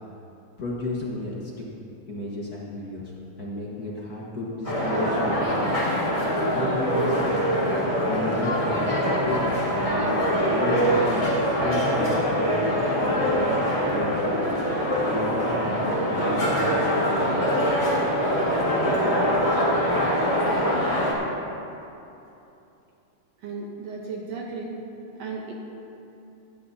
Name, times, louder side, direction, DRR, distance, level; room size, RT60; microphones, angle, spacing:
voice 1, 0.6-1.6 2.1-3.1 3.4-5.8 6.5-7.6 8.1-9.0 9.2-10.2 10.5-11.1 11.6-13.6 13.9-14.4 15.0-17.6, left 1 dB, 55° left, -5 dB, 1.0 m, -33 dB
sound 1, 4.6-21.1, equal, 20° left, 1.0 m, -23 dB
voice 2, 23.4-24.8 25.2-25.5, right 4 dB, 65° right, -1 dB, 1.9 m, -35 dB
17.0 x 12.0 x 2.8 m, 2.8 s
omnidirectional pair, 3.6 m